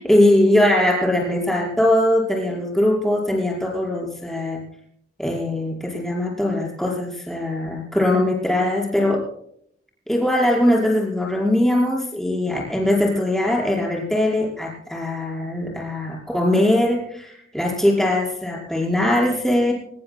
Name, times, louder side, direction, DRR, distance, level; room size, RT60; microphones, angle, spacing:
voice 1, 0.0-4.6 5.2-9.2 10.1-19.7, left 1 dB, ahead, -2 dB, 5.4 m, -21 dB
24.5 x 21.0 x 2.3 m, 0.67 s
head